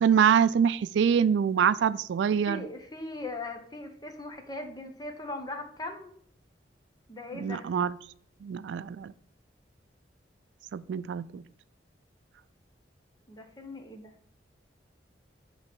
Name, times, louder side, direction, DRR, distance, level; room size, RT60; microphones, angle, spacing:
voice 1, 0.0-2.6 7.3-7.9 8.4-9.1 10.7-11.4, right 7 dB, 90° right, 16 dB, 0.3 m, -25 dB
voice 2, 2.4-6.1 7.1-7.7 13.3-14.1, left 2 dB, 25° left, 5 dB, 0.9 m, -39 dB
7.4 x 3.2 x 6.0 m, 0.63 s
head